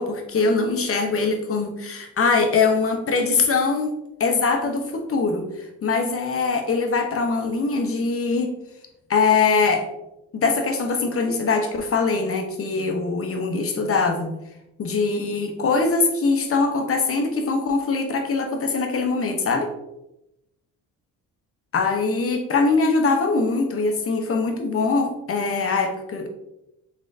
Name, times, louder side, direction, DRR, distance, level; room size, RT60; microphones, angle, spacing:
voice 1, 0.0-8.5 9.1-9.9 10.3-14.4 14.8-19.7 21.7-26.3, left 4 dB, 40° left, 4 dB, 0.8 m, -22 dB
3.7 x 3.7 x 2.6 m, 0.89 s
cardioid pair, 90°, 35 cm